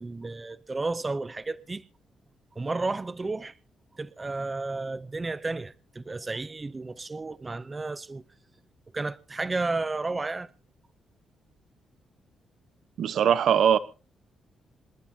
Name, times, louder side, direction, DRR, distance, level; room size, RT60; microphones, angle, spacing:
voice 1, 0.0-1.8 2.6-3.6 3.9-8.2 8.9-10.5, right 3 dB, 25° right, 0.6 m, -32 dB
voice 2, 13.0-13.8, right 8 dB, 70° right, 0.8 m, -21 dB
27.5 x 11.0 x 2.8 m
cardioid pair, 105°, 0 cm